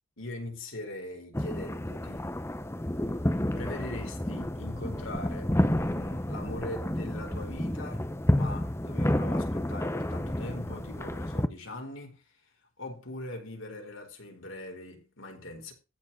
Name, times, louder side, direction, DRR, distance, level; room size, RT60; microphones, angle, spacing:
voice 1, 0.2-2.3 3.5-12.2 12.8-15.7, left 1 dB, 70° left, 4.4 m, -41 dB
sound 1, 1.3-11.5, left 1 dB, 15° left, 0.8 m, -30 dB
14.5 x 4.9 x 7.1 m
head